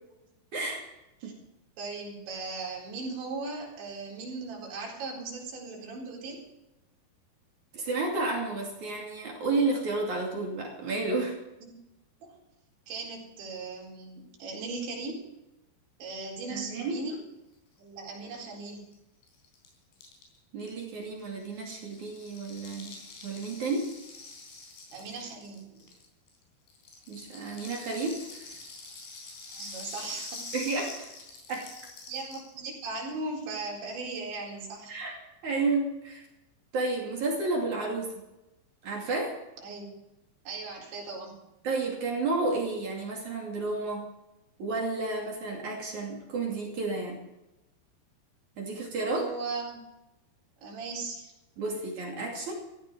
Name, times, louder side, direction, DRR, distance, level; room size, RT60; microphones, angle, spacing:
voice 1, 0.5-0.8 1.2-1.3 7.7-11.4 16.5-17.0 20.5-23.9 27.1-28.6 30.5-31.1 31.5-31.7 34.9-35.2 35.4-36.2 36.7-38.2 38.8-39.3 41.6-44.1 44.6-47.2 48.6-49.3 51.6-52.5, right 3 dB, 45° right, -1 dB, 3.7 m, -31 dB
voice 2, 1.8-6.4 11.6-11.7 12.2-12.4 12.9-15.2 16.0-17.2 17.8-18.9 24.9-25.9 29.5-30.4 32.1-34.9 39.6-39.8 40.5-41.4 49.1-49.8 50.6-51.3, right 3 dB, 80° right, -2 dB, 6.4 m, -38 dB
Rattle (instrument), 18.7-18.8 18.9-19.0 19.2-26.4 26.7-32.5, left 3 dB, 80° left, 6.2 m, -45 dB
15.5 x 15.5 x 5.0 m, 0.95 s
omnidirectional pair, 5.2 m